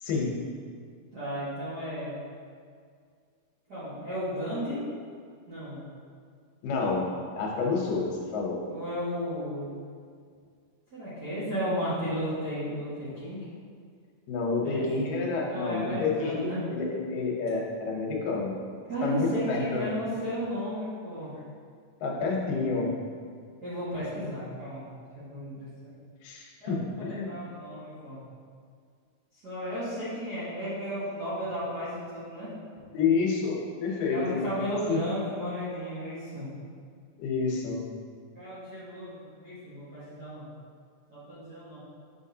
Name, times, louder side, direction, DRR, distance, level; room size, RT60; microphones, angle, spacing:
voice 1, 1.1-2.1 3.7-4.8 5.5-5.8 8.7-9.8 10.9-13.4 14.6-14.8 15.5-16.6 18.9-21.3 23.6-24.9 25.1-25.9 26.6-28.2 29.4-32.5 34.1-36.5 38.3-40.5 41.1-41.8, equal, 45° right, -12 dB, 1.3 m, -34 dB
voice 2, 6.6-7.0 7.4-8.6 14.3-18.5 19.0-19.9 22.0-22.9 26.2-27.3 32.9-34.4 34.9-35.0 37.2-37.8, left 4 dB, 80° left, -1 dB, 2.5 m, -29 dB
6.6 x 5.8 x 2.7 m, 2.1 s
omnidirectional pair, 3.9 m